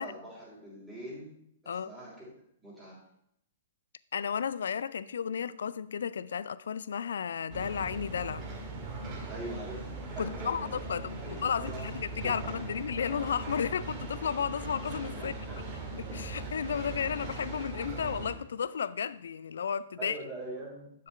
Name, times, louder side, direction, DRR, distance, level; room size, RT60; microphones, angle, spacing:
voice 1, 0.0-1.4 1.6-2.3 2.6-3.0 9.3-11.9 12.2-12.5 15.2-15.6 20.0-20.9, right 1 dB, 5° right, 3.4 m, -43 dB
voice 2, 4.1-8.4 10.2-15.3 16.0-20.2, left 7 dB, 60° left, 0.3 m, -33 dB
sound 1, 7.5-18.3, right 2 dB, 25° right, 2.2 m, -39 dB
11.0 x 6.6 x 3.3 m
figure-of-eight pair, 115°, 0 cm